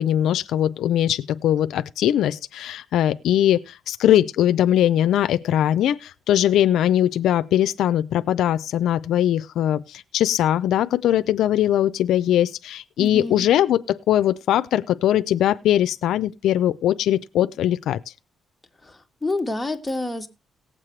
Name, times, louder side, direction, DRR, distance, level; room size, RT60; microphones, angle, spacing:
voice 1, 0.0-18.0, left 11 dB, 80° left, 0.5 m, -21 dB
voice 2, 13.0-13.5 18.8-20.3, left 2 dB, 10° left, 1.5 m, -28 dB
18.5 x 7.5 x 3.2 m
cardioid pair, 105°, 0 cm